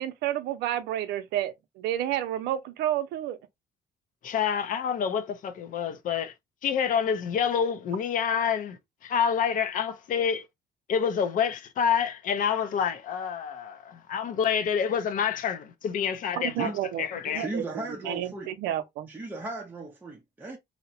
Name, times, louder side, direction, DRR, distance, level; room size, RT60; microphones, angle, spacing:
voice 1, 0.0-3.4 16.4-19.1, right 12 dB, 85° right, 0.5 m, -31 dB
voice 2, 4.2-6.3 6.6-10.4 10.9-16.7 17.0-17.5, left 7 dB, 55° left, 0.5 m, -27 dB
voice 3, 17.4-18.5 19.1-20.6, right 2 dB, 10° right, 0.5 m, -36 dB
2.8 x 2.0 x 2.6 m
cardioid pair, 110°, 17 cm